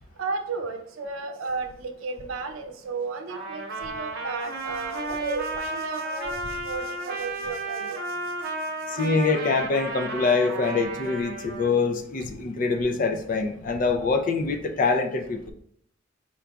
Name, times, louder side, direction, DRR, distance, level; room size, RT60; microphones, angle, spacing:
voice 1, 0.2-8.0, right 4 dB, 90° right, 6 dB, 0.6 m, -33 dB
Trumpet, 3.3-11.7, right 2 dB, 50° right, 0.7 m, -33 dB
voice 2, 8.9-15.5, left 4 dB, 40° left, 5 dB, 0.4 m, -24 dB
4.5 x 2.3 x 3.9 m, 0.67 s
head